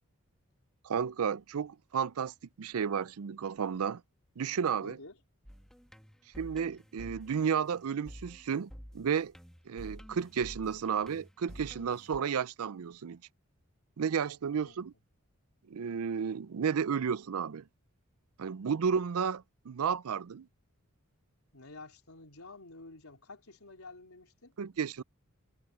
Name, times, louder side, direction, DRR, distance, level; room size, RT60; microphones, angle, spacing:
voice 1, 0.8-4.0 4.4-5.0 6.4-9.3 9.7-13.2 14.0-14.9 15.7-17.6 18.4-20.5 24.6-25.0, right 7 dB, 80° right, 0.5 m, -32 dB
voice 2, 4.8-5.2 14.5-14.8 21.5-24.5, left 3 dB, 80° left, 3.7 m, -50 dB
sound 1, 5.4-12.2, equal, 5° left, 1.9 m, -50 dB
head